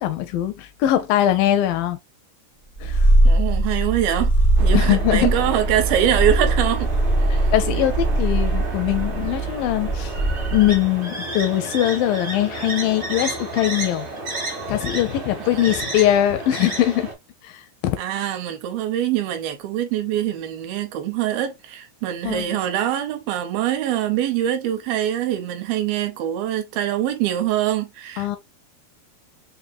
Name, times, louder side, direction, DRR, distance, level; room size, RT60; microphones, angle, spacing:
voice 1, 0.0-2.0 2.8-3.1 4.7-5.3 7.3-10.2 10.5-14.1 14.7-17.1 17.4-18.0 22.2-22.6 28.2-28.4, left 12 dB, 80° left, 2.0 m, -21 dB
Purr, 2.8-10.8, right 1 dB, 50° left, 0.4 m, -21 dB
voice 2, 3.2-4.3 4.6-6.9 7.2-7.5 7.8-7.9 15.4-15.9 18.0-28.4, right 11 dB, 80° right, 2.4 m, -24 dB
sound 1, 4.6-17.1, right 2 dB, 60° right, 0.8 m, -32 dB
6.1 x 2.8 x 2.5 m
omnidirectional pair, 4.4 m